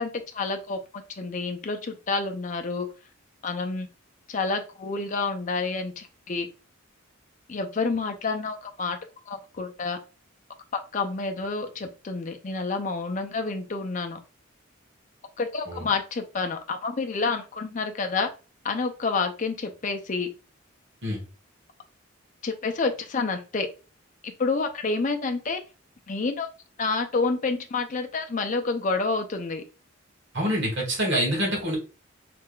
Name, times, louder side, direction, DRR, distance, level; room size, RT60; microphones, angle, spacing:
voice 1, 0.0-2.9 3.4-3.9 4.3-6.5 7.5-9.0 9.3-10.0 10.7-14.2 15.4-18.3 18.6-20.3 22.4-23.7 24.2-25.6 26.1-26.5 26.8-29.6, left 4 dB, 40° left, 6 dB, 0.5 m, -29 dB
voice 2, 30.3-31.8, equal, 55° right, -2 dB, 1.6 m, -26 dB
3.5 x 3.3 x 2.2 m, 0.33 s
head